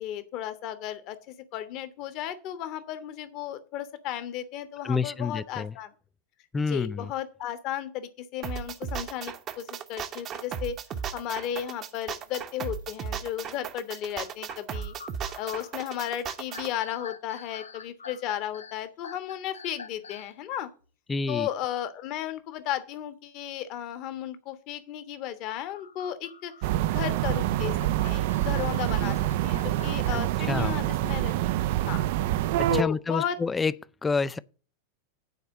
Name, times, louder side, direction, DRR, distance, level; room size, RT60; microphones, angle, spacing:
voice 1, 0.0-5.9 6.7-10.8 11.1-14.9 15.4-20.7 21.3-27.8 28.0-29.2 29.4-32.0 32.7-33.4, left 11 dB, 40° left, 1.2 m, -34 dB
voice 2, 4.8-5.7 6.5-7.1 21.1-21.5 30.1-30.2 30.5-30.8 32.6-33.7 34.0-34.4, left 4 dB, 15° left, 0.4 m, -28 dB
sound 1, 8.4-16.7, right 8 dB, 30° right, 0.8 m, -36 dB
sound 2, 11.3-11.5 12.1-12.2 12.8-13.1 14.2-20.3 25.2-30.8, left 5 dB, 75° left, 0.6 m, -47 dB
sound 3, 26.6-32.8, right 14 dB, 50° right, 0.4 m, -26 dB
9.3 x 4.4 x 7.3 m
figure-of-eight pair, 90°, 0 cm